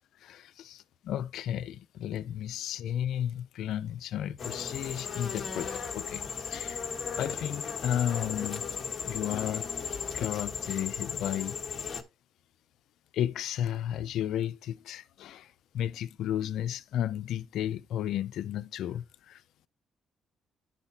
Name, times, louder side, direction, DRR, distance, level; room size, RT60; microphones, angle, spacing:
voice 1, 0.2-6.8 7.1-8.7 9.0-9.7 10.1-11.6 13.1-19.4, left 11 dB, 80° left, 0.5 m, -33 dB
sound 1, 4.4-12.0, left 6 dB, 50° left, 1.4 m, -36 dB
11.5 x 4.1 x 2.9 m
cardioid pair, 90°, 0 cm